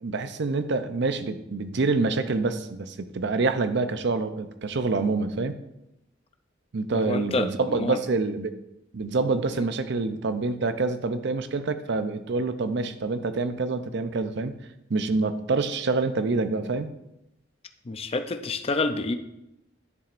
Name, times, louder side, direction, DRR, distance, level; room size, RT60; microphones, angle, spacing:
voice 1, 0.0-5.6 6.7-8.5 8.9-14.6 14.9-16.9, right 3 dB, 65° right, 10 dB, 0.6 m, -26 dB
voice 2, 6.9-8.0 9.5-9.6 17.9-19.1, left 3 dB, 30° left, 8 dB, 0.5 m, -28 dB
11.0 x 7.1 x 2.5 m, 0.88 s
head